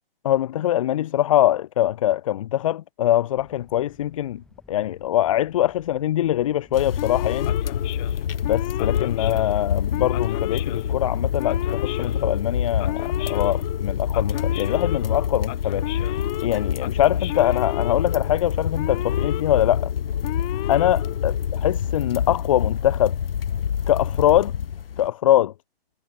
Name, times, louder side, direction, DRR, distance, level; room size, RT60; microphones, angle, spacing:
voice 1, 0.2-4.4 4.7-7.6 8.4-19.9 20.7-23.1 23.9-24.5 25.0-25.5, left 12 dB, 35° left, 1.5 m, -23 dB
sound 1, 3.3-16.7, left 2 dB, ahead, 7.9 m, -55 dB
sound 2, 6.7-25.1, left 8 dB, 70° left, 0.9 m, -26 dB
Male speech man speaking / Siren, 7.0-21.7, left 31 dB, 15° left, 1.6 m, -33 dB
hypercardioid pair, 160°, 30 cm